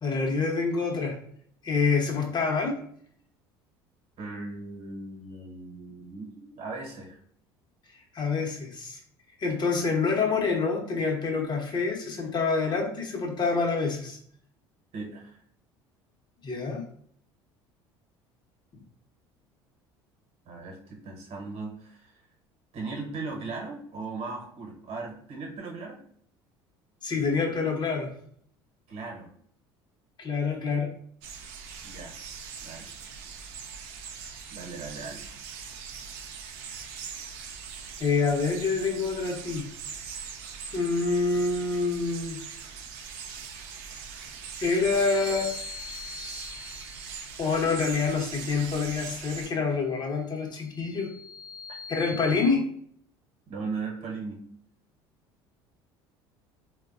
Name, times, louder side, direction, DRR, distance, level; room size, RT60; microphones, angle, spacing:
voice 1, 0.0-1.2 1.6-2.8 8.1-9.0 9.4-14.2 16.4-16.8 27.0-28.1 30.2-30.9 38.0-39.7 40.7-42.4 44.6-45.5 47.4-51.1 51.9-52.6, left 4 dB, 35° left, 1 dB, 0.8 m, -27 dB
voice 2, 4.2-7.2 14.9-15.4 20.5-22.1 22.7-26.0 28.9-29.3 31.8-32.2 32.6-32.9 34.5-35.3 53.5-54.4, right 3 dB, 50° right, 0 dB, 0.9 m, -38 dB
sound 1, 31.2-49.5, right 6 dB, 70° right, 0.5 m, -41 dB
sound 2, 44.9-47.5 50.4-52.5, left 6 dB, 5° right, 0.7 m, -43 dB
3.3 x 2.2 x 2.4 m, 0.62 s
hypercardioid pair, 75°, 13 cm